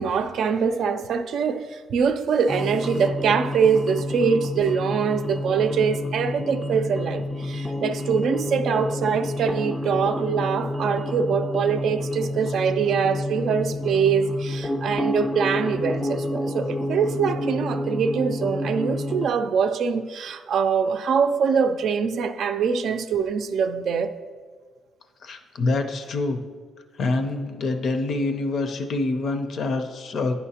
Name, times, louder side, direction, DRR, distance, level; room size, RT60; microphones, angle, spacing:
voice 1, 0.0-24.1, right 6 dB, 70° right, 0.4 m, -23 dB
sound 1, 2.5-19.3, left 1 dB, 10° left, 0.4 m, -29 dB
voice 2, 25.2-26.4 27.0-30.3, left 3 dB, 60° left, 0.5 m, -26 dB
9.0 x 5.6 x 2.8 m
cardioid pair, 90°, 0 cm